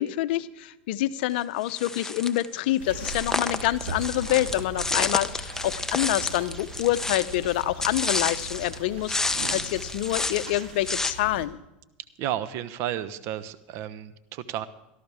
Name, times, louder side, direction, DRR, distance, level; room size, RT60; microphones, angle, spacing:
voice 1, 0.0-11.6, left 15 dB, 70° left, 15 dB, 0.7 m, -27 dB
sound 1, 1.7-2.4 3.0-8.8 9.0-11.1, left 3 dB, 10° left, 0.9 m, -30 dB
sound 2, 2.8-11.5, right 4 dB, 85° right, 1.7 m, -40 dB
voice 2, 12.2-14.7, right 11 dB, 55° right, 12 dB, 1.0 m, -32 dB
17.5 x 13.0 x 3.5 m, 0.94 s
supercardioid pair, 115°, 5 cm